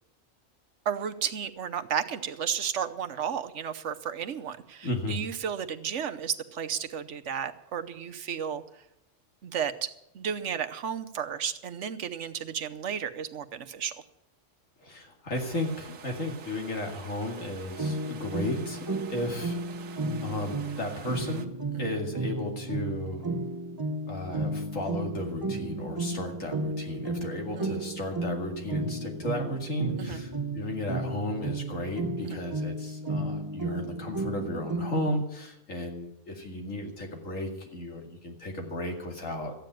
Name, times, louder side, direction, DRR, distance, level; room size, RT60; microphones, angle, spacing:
voice 1, 0.8-8.6 9.4-13.9 21.7-21.9 27.5-27.8 30.0-30.2 32.2-32.4, right 8 dB, 70° right, 9 dB, 1.2 m, -33 dB
voice 2, 4.8-5.2 14.8-19.6 20.2-21.5 21.8-23.2 24.1-39.5, left 1 dB, 80° left, 2 dB, 2.7 m, -34 dB
sound 1, 15.3-21.5, right 5 dB, 90° right, 1.5 m, -47 dB
sound 2, 17.8-35.2, right 2 dB, 25° right, 0.6 m, -33 dB
14.0 x 9.2 x 9.2 m, 0.84 s
omnidirectional pair, 1.3 m